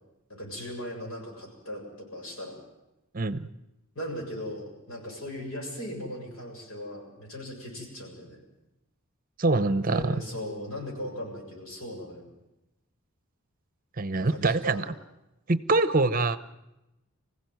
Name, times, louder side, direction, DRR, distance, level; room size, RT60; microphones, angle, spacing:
voice 1, 0.3-2.6 4.0-8.4 9.9-12.3 14.2-14.9, equal, 70° left, 1 dB, 7.2 m, -38 dB
voice 2, 3.1-3.5 9.4-10.2 14.0-14.9 15.5-16.4, right 3 dB, 40° right, 14 dB, 0.8 m, -24 dB
25.0 x 16.0 x 9.3 m, 0.95 s
head